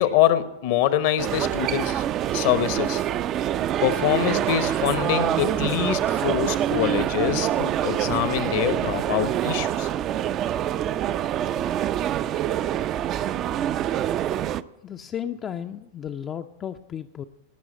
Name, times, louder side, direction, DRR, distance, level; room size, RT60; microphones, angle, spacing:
voice 1, 0.0-2.0 2.3-3.0 3.8-9.9, left 11 dB, 50° left, 13 dB, 0.9 m, -24 dB
sound 1, 1.2-14.6, right 11 dB, 35° right, 0.4 m, -25 dB
voice 2, 14.8-17.2, left 9 dB, 25° left, 7 dB, 0.5 m, -34 dB
18.5 x 6.2 x 8.5 m, 0.93 s
figure-of-eight pair, 90°, 0 cm